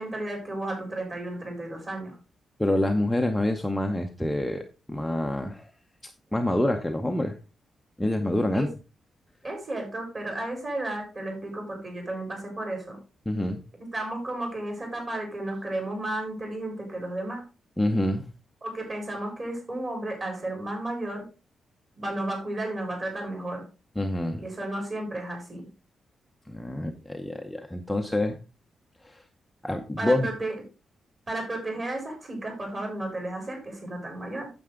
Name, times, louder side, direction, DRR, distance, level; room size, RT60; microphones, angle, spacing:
voice 1, 0.0-2.2 8.5-8.7 9.4-13.0 13.8-17.4 18.6-21.3 22.0-23.6 24.4-25.7 30.0-30.5 31.3-34.5, right 1 dB, 30° right, 2 dB, 4.5 m, -33 dB
voice 2, 2.6-5.7 6.3-7.4 8.0-8.7 13.3-13.6 17.8-18.3 24.0-24.4 26.5-28.4 29.0-29.2 29.6-30.3, left 1 dB, 5° left, 3 dB, 0.8 m, -27 dB
9.2 x 7.7 x 3.8 m, 0.30 s
wide cardioid pair, 170°, 0 cm